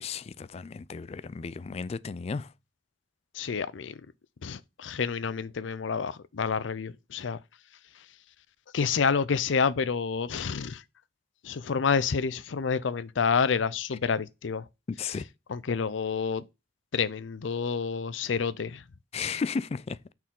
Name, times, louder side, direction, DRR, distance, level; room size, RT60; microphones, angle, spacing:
voice 1, 0.0-2.5 14.9-15.2 19.1-20.0, left 5 dB, 35° left, 0.3 m, -34 dB
voice 2, 3.3-4.0 4.4-7.4 8.7-10.8 11.4-14.6 15.5-16.4 16.9-18.8, left 5 dB, 85° left, 0.5 m, -28 dB
6.1 x 4.4 x 3.7 m
head